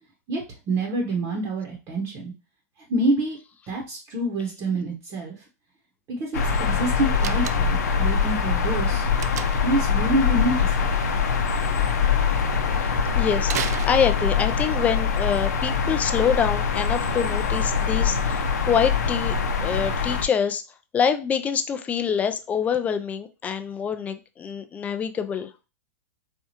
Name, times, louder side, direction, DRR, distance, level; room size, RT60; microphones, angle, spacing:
voice 1, 0.3-2.3 2.9-3.4 3.7-5.3 6.1-9.0 9.6-10.9, right 1 dB, 35° right, 0.9 m, -27 dB
sound 1, 6.3-20.2, left 6 dB, 85° left, 0.7 m, -23 dB
Slam, 7.2-7.9 9.2-9.8 13.4-14.5, right 9 dB, 75° right, 0.4 m, -33 dB
voice 2, 13.1-19.4 19.6-20.6 20.9-25.5, left 7 dB, 15° left, 0.3 m, -25 dB
4.2 x 2.3 x 2.8 m
hypercardioid pair, 130°, 9 cm